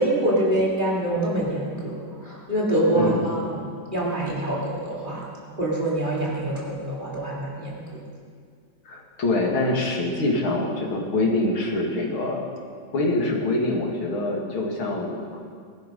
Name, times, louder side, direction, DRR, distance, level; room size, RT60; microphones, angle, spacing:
voice 1, 0.0-3.6 3.9-5.3 5.5-7.9, right 1 dB, 25° right, -6 dB, 3.5 m, -25 dB
voice 2, 2.9-3.2 8.8-12.4 12.9-15.4, left 2 dB, 85° left, -1 dB, 3.0 m, -25 dB
20.0 x 11.5 x 5.3 m, 2.1 s
omnidirectional pair, 2.2 m